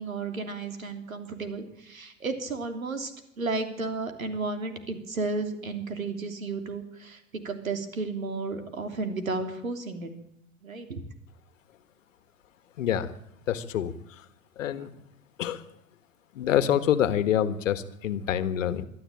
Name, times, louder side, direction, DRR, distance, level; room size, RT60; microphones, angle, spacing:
voice 1, 0.0-3.1 3.4-7.2 7.4-10.1 10.6-11.0, right 3 dB, 85° right, 6 dB, 3.1 m, -33 dB
voice 2, 12.8-13.1 13.5-13.9 14.6-14.9 15.4-15.6 16.3-18.8, left 10 dB, 70° left, 13 dB, 1.6 m, -26 dB
23.5 x 13.0 x 8.8 m, 0.78 s
figure-of-eight pair, 90°, 40 cm